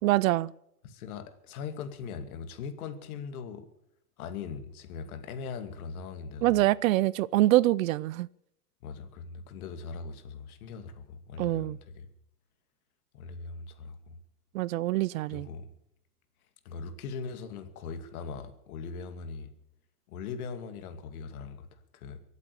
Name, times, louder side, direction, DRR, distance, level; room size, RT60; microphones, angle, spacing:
voice 1, 0.0-0.5 6.4-8.3 11.4-11.8 14.5-15.5, right 16 dB, 60° right, 0.6 m, -25 dB
voice 2, 0.8-3.7 4.2-6.6 8.8-12.1 13.1-14.2 15.2-15.7 16.6-19.5 20.1-22.2, left 5 dB, 65° left, 2.5 m, -40 dB
24.0 x 8.3 x 7.0 m
hypercardioid pair, 125°, 47 cm